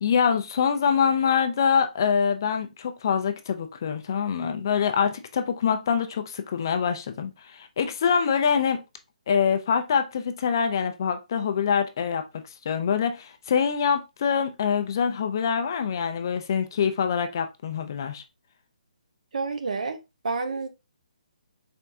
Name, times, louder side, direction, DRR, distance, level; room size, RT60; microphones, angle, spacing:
voice 1, 0.0-8.8 9.3-12.2 12.7-18.2, left 7 dB, 25° left, 0.4 m, -25 dB
voice 2, 19.3-20.0 20.2-20.7, right 4 dB, 55° right, 0.8 m, -29 dB
4.4 x 3.4 x 2.6 m
hypercardioid pair, 175°, 4 cm